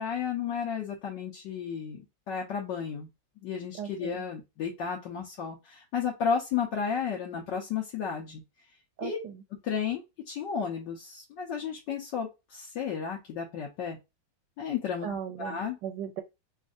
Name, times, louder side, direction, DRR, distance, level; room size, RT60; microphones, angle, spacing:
voice 1, 0.0-3.1 3.4-8.4 9.0-9.2 9.6-14.0 14.6-15.1 15.4-15.8, left 7 dB, 70° left, 1.5 m, -33 dB
voice 2, 3.8-4.2 9.0-9.4 15.0-16.2, right 9 dB, 75° right, 1.1 m, -37 dB
5.2 x 2.4 x 2.6 m
omnidirectional pair, 2.1 m